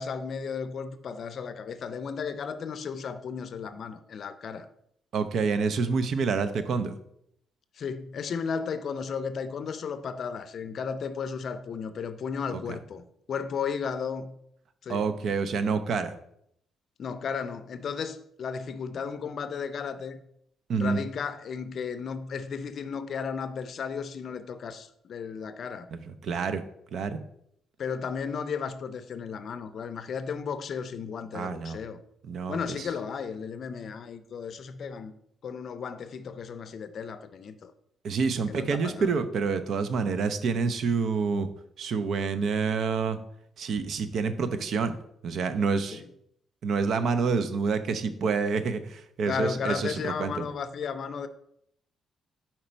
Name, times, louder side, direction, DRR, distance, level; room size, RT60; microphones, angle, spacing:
voice 1, 0.0-4.7 7.8-14.4 14.8-15.1 17.0-20.2 20.7-25.9 27.8-32.0 32.5-35.1 35.4-37.7 38.5-39.1 45.9-46.1 49.2-51.3, left 6 dB, 55° left, 0.5 m, -34 dB
voice 2, 5.1-7.0 12.7-12.8 14.9-16.2 20.7-21.0 25.9-26.6 26.9-27.2 31.3-31.8 32.2-32.9 38.0-41.5 41.8-43.2 43.6-45.0 45.2-46.0 46.6-50.4, right 5 dB, 65° right, 0.5 m, -28 dB
5.0 x 4.4 x 4.4 m
cardioid pair, 90°, 0 cm